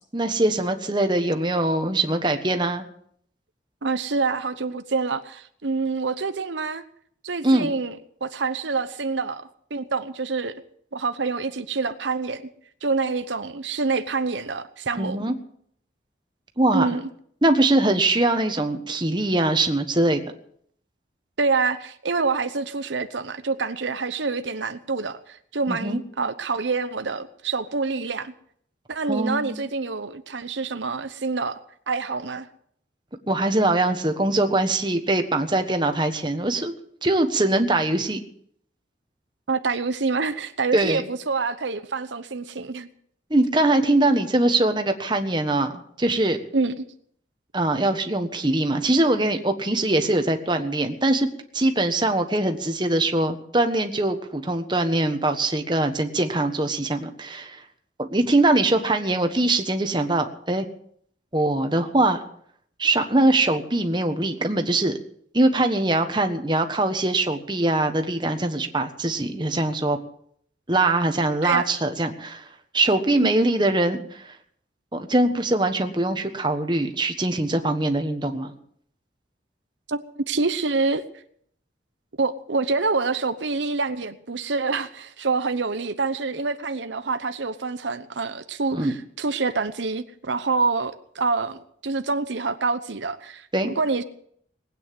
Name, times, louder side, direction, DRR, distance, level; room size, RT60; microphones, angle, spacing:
voice 1, 0.1-2.8 7.4-7.7 15.0-15.3 16.6-16.9 17.4-20.2 25.7-26.0 29.1-29.6 33.3-36.7 37.0-38.2 40.7-41.0 43.3-46.4 47.5-51.3 51.5-57.6 58.0-60.6 61.3-62.2 62.8-65.0 65.3-70.0 70.7-72.5 72.7-74.3 74.9-78.5 88.7-88.9 93.5-93.7, right 2 dB, 25° right, 6 dB, 1.3 m, -22 dB
voice 2, 3.8-6.8 7.2-9.4 9.7-10.5 10.9-12.4 12.8-15.2 16.7-17.1 21.4-28.3 28.9-31.6 31.9-32.5 39.5-42.9 46.5-46.9 71.4-71.7 73.2-73.3 79.9-81.0 82.2-94.0, right 4 dB, 85° right, 10 dB, 0.9 m, -26 dB
19.5 x 9.1 x 7.7 m, 0.64 s
head